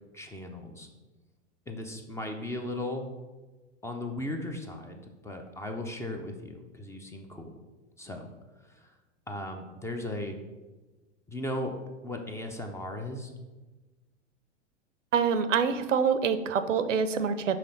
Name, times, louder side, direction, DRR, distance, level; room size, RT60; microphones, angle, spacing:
voice 1, 0.1-0.9 1.7-3.1 3.8-7.6 8.0-8.3 8.7-8.9 9.3-10.4 11.3-11.7 12.0-13.3, left 1 dB, 10° left, 4 dB, 0.4 m, -37 dB
voice 2, 15.1-17.6, right 6 dB, 85° right, 11 dB, 0.6 m, -26 dB
5.7 x 3.3 x 5.3 m, 1.2 s
hypercardioid pair, 95°, 36 cm